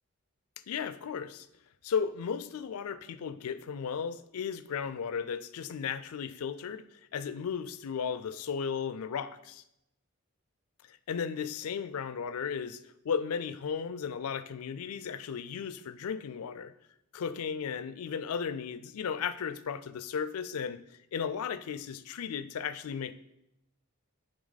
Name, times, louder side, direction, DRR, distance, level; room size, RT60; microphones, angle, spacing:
voice 1, 0.7-1.5 1.8-9.6 10.9-16.7 17.1-20.8 21.1-23.1, left 6 dB, 80° left, 13 dB, 0.4 m, -35 dB
9.5 x 3.4 x 4.0 m, 0.83 s
head